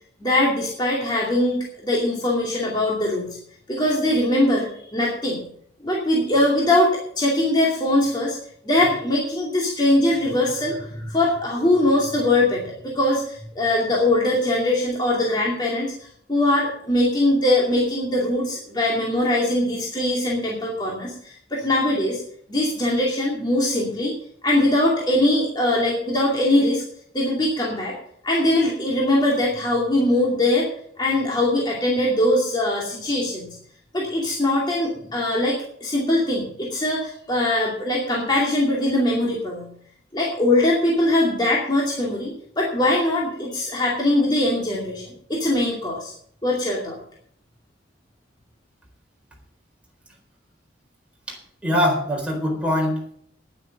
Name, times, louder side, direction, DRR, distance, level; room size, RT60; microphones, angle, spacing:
voice 1, 0.2-3.4 3.7-5.4 5.8-8.4 8.6-15.9 16.3-22.2 22.5-24.2 24.4-26.8 27.1-28.0 28.2-30.7 31.0-33.6 33.9-39.7 40.1-46.1 46.4-47.0, left 1 dB, 25° left, -4 dB, 2.5 m, -21 dB
voice 2, 51.6-53.2, equal, 5° right, -1 dB, 4.1 m, -23 dB
10.0 x 9.4 x 7.8 m, 0.64 s
head